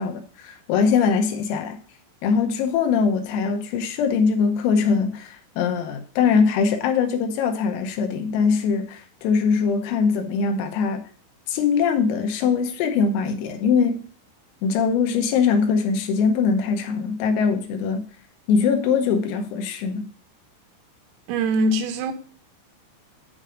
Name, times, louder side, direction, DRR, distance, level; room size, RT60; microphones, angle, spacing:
voice 1, 0.0-1.8 2.2-11.0 11.5-14.1 14.6-18.1 18.5-20.1, left 5 dB, 90° left, 3.7 m, -22 dB
voice 2, 21.3-22.1, right 1 dB, 85° right, 3.5 m, -22 dB
9.9 x 3.4 x 5.0 m
omnidirectional pair, 5.8 m